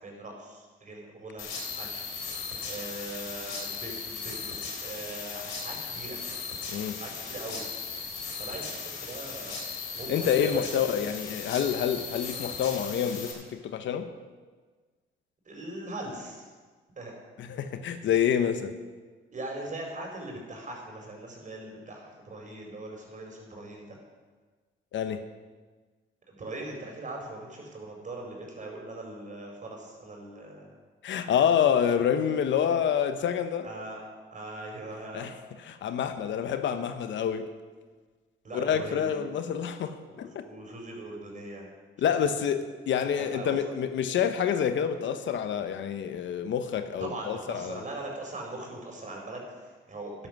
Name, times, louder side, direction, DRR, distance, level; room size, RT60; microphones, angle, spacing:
voice 1, 0.0-1.4 1.8-2.1 2.6-6.2 7.0-7.6 8.4-9.6 9.9-10.5 15.4-16.5 17.0-17.1 19.3-24.0 26.3-30.7 33.6-34.0 34.3-35.3 38.4-39.4 40.1-41.7 42.0-42.1 43.0-43.5 47.0-50.3, right 2 dB, 40° right, 4.7 m, -40 dB
sound 1, 1.4-13.3, left 5 dB, 85° left, 4.1 m, -37 dB
voice 2, 10.1-14.1 17.4-18.7 24.9-25.2 31.0-33.7 35.1-37.5 38.5-40.5 42.0-47.8, left 8 dB, 70° left, 1.0 m, -27 dB
13.0 x 11.0 x 6.1 m
cardioid pair, 90°, 20 cm